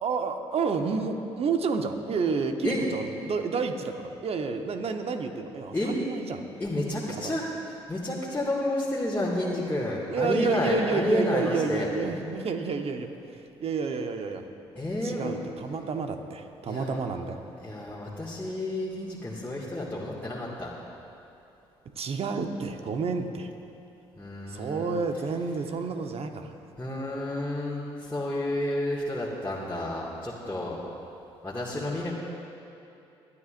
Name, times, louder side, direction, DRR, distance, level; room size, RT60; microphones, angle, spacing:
voice 1, 0.0-6.5 7.1-7.4 10.1-13.1 13.6-14.5 15.0-17.4 22.0-23.5 24.5-26.5, right 4 dB, 50° right, 6 dB, 1.1 m, -30 dB
voice 2, 6.6-11.9 14.8-15.3 16.7-17.0 17.6-20.7 24.2-24.9 26.8-30.8 31.4-32.1, left 1 dB, 15° left, -7 dB, 2.2 m, -30 dB
21.0 x 13.0 x 2.6 m, 2.8 s
hypercardioid pair, 50°, 13 cm